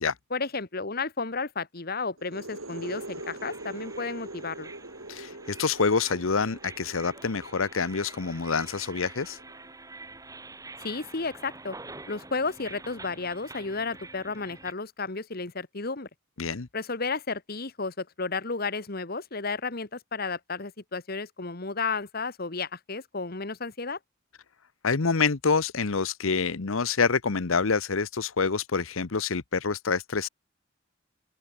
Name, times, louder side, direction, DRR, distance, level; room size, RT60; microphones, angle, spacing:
voice 1, 0.3-4.7 10.8-11.8 12.1-16.1 16.7-24.0, left 4 dB, 45° left, 1.6 m, -32 dB
sound 1, 2.2-9.7, right 2 dB, 90° right, 7.1 m, -43 dB
sound 2, 2.8-14.7, right 3 dB, 15° right, 2.8 m, -47 dB
voice 2, 5.1-9.4 16.4-16.7 24.8-30.3, left 5 dB, 80° left, 0.9 m, -27 dB
open air
head